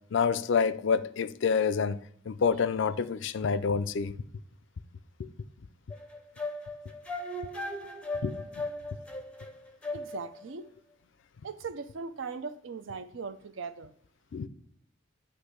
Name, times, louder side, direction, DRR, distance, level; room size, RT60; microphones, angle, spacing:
voice 1, 0.1-2.0 2.3-4.2 5.2-5.3 8.2-8.4 14.3-14.5, left 5 dB, 60° left, 0.4 m, -27 dB
sound 1, 5.9-10.4, left 2 dB, 5° left, 0.6 m, -37 dB
voice 2, 9.9-10.6 11.4-13.9, right 5 dB, 65° right, 0.5 m, -39 dB
8.2 x 3.0 x 4.5 m
head